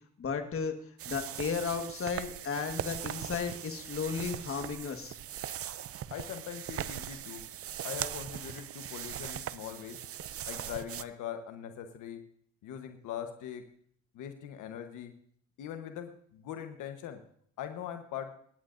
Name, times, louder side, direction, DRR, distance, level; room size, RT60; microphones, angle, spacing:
voice 1, 0.2-0.7 1.1-5.2, left 5 dB, 45° left, 6 dB, 1.6 m, -34 dB
sound 1, 1.0-11.0, right 11 dB, 50° right, 0.5 m, -40 dB
voice 2, 6.1-7.4 7.8-10.0 10.5-12.2 12.6-13.6 14.1-15.1 15.6-17.2 17.6-18.3, left 9 dB, 85° left, 6 dB, 1.2 m, -41 dB
24.0 x 10.5 x 2.6 m, 0.62 s
cardioid pair, 90°, 30 cm